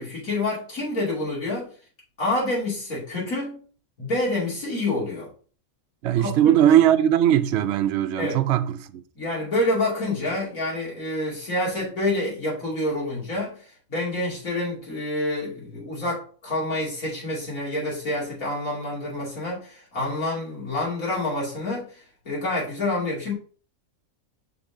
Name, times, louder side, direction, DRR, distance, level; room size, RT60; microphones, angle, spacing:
voice 1, 0.0-1.7 2.2-3.6 4.0-5.3 6.2-6.3 8.2-8.4 9.1-13.6 13.9-23.3, left 2 dB, 75° left, 3.2 m, -27 dB
voice 2, 6.0-9.0, right 11 dB, 60° right, 0.8 m, -19 dB
5.9 x 3.9 x 4.9 m
omnidirectional pair, 1.4 m